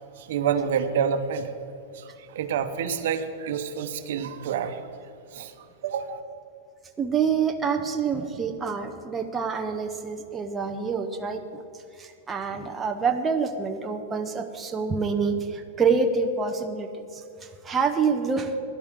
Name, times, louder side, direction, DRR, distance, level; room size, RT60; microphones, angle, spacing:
voice 1, 0.0-1.5 1.9-4.8 5.3-5.5 5.8-6.2, right 7 dB, 65° right, 8 dB, 1.0 m, -28 dB
voice 2, 7.0-11.6 12.0-18.6, right 5 dB, 15° right, 4 dB, 0.7 m, -27 dB
17.0 x 11.5 x 3.7 m, 2.7 s
supercardioid pair, 150°, 0 cm